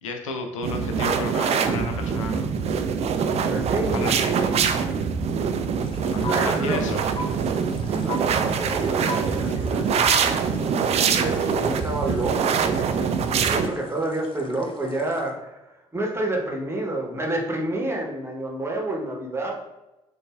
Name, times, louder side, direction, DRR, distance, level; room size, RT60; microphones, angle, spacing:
voice 1, 0.0-2.5 3.9-4.3 6.0-7.0, left 3 dB, 75° left, 5 dB, 0.5 m, -33 dB
sound 1, 0.6-13.7, right 6 dB, 40° right, 0.4 m, -24 dB
voice 2, 3.5-4.7 6.2-6.8 7.8-10.3 11.1-13.2 13.5-19.6, right 2 dB, 15° right, 0 dB, 1.0 m, -29 dB
sound 2, 5.8-15.3, left 3 dB, 30° left, 0.6 m, -40 dB
6.5 x 2.4 x 2.4 m, 1.0 s
figure-of-eight pair, 45°, 16 cm